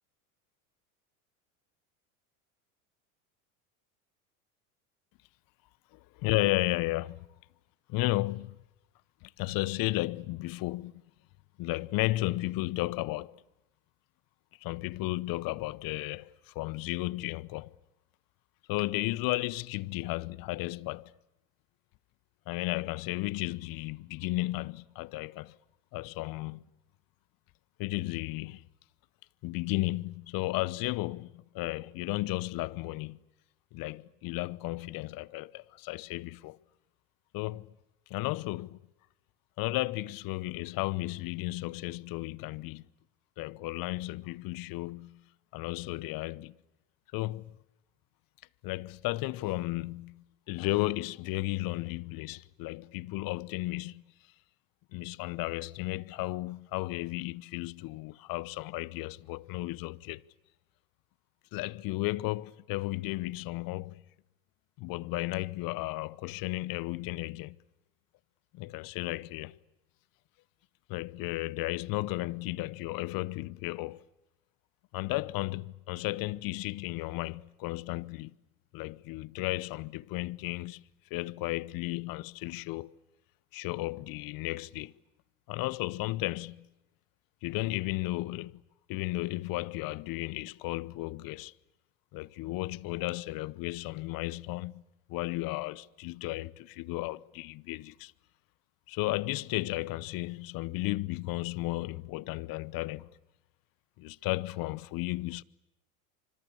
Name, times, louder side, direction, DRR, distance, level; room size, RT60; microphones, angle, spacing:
voice 1, 5.9-7.2 7.9-8.6 9.2-11.0 11.6-13.4 14.6-17.7 18.7-21.1 22.5-25.6 25.9-26.6 27.8-28.6 29.4-33.2 33.7-36.6 37.3-37.8 38.1-38.8 39.6-42.9 43.4-45.2 45.5-46.6 47.1-47.6 48.6-54.0 54.9-60.2 61.5-64.0 64.8-67.6 68.5-69.6 70.9-74.0 74.9-78.3 78.7-80.8 81.1-83.0 83.5-84.9 85.5-86.7 87.4-88.6 88.9-91.5 92.1-94.8 95.1-98.1 98.9-103.1 104.0-105.4, left 19 dB, 50° left, 0.9 m, -34 dB
25.5 x 25.0 x 8.5 m
hypercardioid pair, 85°, 44 cm